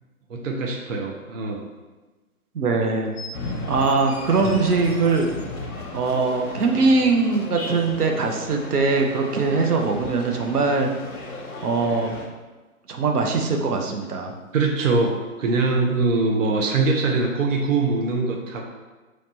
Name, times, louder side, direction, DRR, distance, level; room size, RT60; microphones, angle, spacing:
voice 1, 0.3-1.6 14.5-18.6, right 3 dB, 60° right, 1 dB, 0.7 m, -22 dB
voice 2, 2.5-3.2 3.7-5.3 5.9-10.9 11.6-12.2 12.9-14.3, right 4 dB, 85° right, 3 dB, 0.8 m, -21 dB
sound 1, 3.1-3.3 3.8-5.5 6.9-7.0, left 2 dB, 40° left, 0.8 m, -42 dB
sound 2, 3.3-12.3, left 2 dB, 70° left, 1.0 m, -35 dB
3.2 x 2.9 x 4.3 m, 1.2 s
hypercardioid pair, 155°, 44 cm